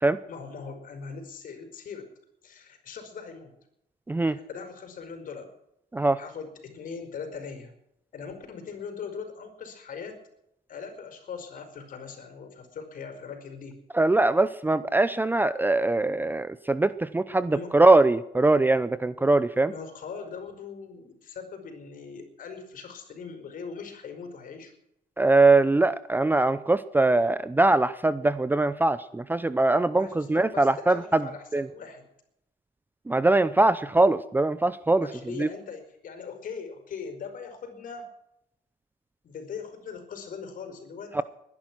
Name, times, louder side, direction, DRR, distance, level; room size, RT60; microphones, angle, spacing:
voice 1, 0.3-2.1 2.4-3.5 4.3-5.5 6.2-7.7 8.1-10.2 10.7-13.8 17.5-17.7 19.7-24.7 29.9-31.4 31.7-32.0 35.0-38.1 39.2-41.2, left 5 dB, 55° left, 7 dB, 4.8 m, -40 dB
voice 2, 4.1-4.4 5.9-6.2 13.9-19.7 25.2-31.3 31.5-31.7 33.1-35.1 35.4-35.5 41.1-41.2, right 2 dB, 10° right, 15 dB, 0.6 m, -22 dB
21.0 x 11.0 x 6.1 m, 0.81 s
cardioid pair, 110°, 17 cm